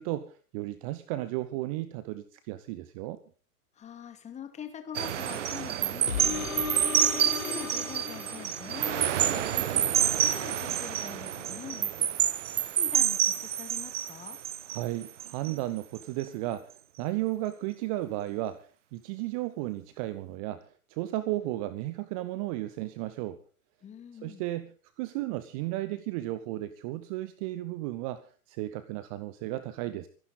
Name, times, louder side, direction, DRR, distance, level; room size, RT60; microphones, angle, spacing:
voice 1, 0.0-3.2 14.7-18.7 18.9-23.4 24.2-30.1, right 16 dB, 25° right, 15 dB, 0.8 m, -34 dB
voice 2, 3.8-14.4 23.8-24.4, left 8 dB, 15° left, 7 dB, 2.5 m, -44 dB
sound 1, 4.9-15.5 15.9-16.2, right 10 dB, 50° right, 1.3 m, -28 dB
sound 2, 6.1-9.0 9.5-9.6, left 6 dB, 60° left, 3.3 m, -36 dB
25.5 x 11.0 x 4.0 m, 0.39 s
figure-of-eight pair, 110°, 46 cm